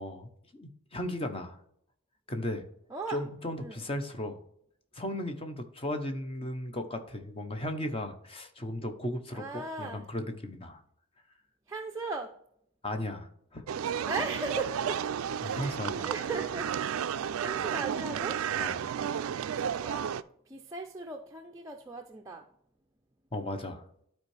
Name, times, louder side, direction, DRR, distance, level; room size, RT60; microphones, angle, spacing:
voice 1, 0.0-1.6 2.3-2.6 3.1-4.4 4.9-10.8 12.8-13.6 15.4-16.1 18.6-19.0 23.3-23.8, left 1 dB, 25° left, 7 dB, 0.8 m, -36 dB
voice 2, 2.9-3.2 3.6-3.9 9.3-10.1 11.7-12.4 14.1-15.0 15.4-15.7 16.0-18.4 19.6-20.1 20.5-22.5, right 3 dB, 15° right, 2 dB, 0.5 m, -38 dB
sound 1, 13.7-20.2, right 8 dB, 75° right, 0.3 m, -32 dB
12.0 x 4.5 x 3.3 m, 0.70 s
head